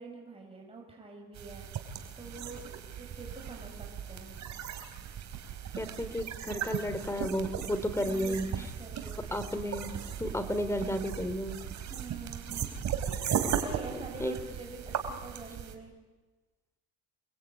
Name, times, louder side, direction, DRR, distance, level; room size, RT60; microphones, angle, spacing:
voice 1, 0.0-2.6 3.0-4.4 8.0-9.4 11.9-12.6 13.6-16.0, right 3 dB, 15° right, 0 dB, 7.1 m, -46 dB
sound 1, 1.3-15.7, right 8 dB, 55° right, 3.8 m, -37 dB
voice 2, 5.7-8.7 9.3-11.6 13.9-14.4, equal, 10° left, 9 dB, 3.3 m, -33 dB
29.0 x 22.0 x 9.3 m, 1.2 s
cardioid pair, 125°, 34 cm